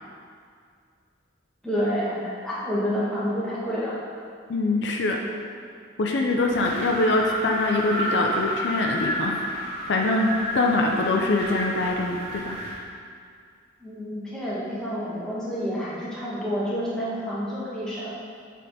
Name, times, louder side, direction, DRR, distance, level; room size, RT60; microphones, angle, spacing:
voice 1, 1.6-4.0 13.8-18.1, equal, 5° left, -9 dB, 1.2 m, -29 dB
voice 2, 4.5-5.2 6.0-12.6, left 2 dB, 65° left, 1 dB, 0.5 m, -24 dB
Wind, 6.4-12.9, equal, 35° right, 1.0 m, -31 dB
6.6 x 3.7 x 4.0 m, 2.2 s
head